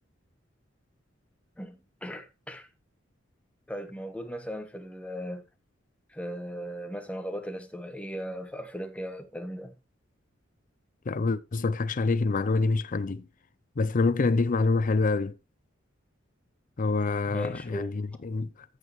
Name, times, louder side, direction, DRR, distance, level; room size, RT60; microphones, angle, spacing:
voice 1, 1.6-2.7 3.7-5.4 6.1-9.7 17.3-18.0, equal, 5° left, 1.2 m, -37 dB
voice 2, 11.1-13.3 13.8-15.3 16.8-18.5, left 3 dB, 45° left, 0.5 m, -26 dB
14.0 x 6.5 x 3.1 m
head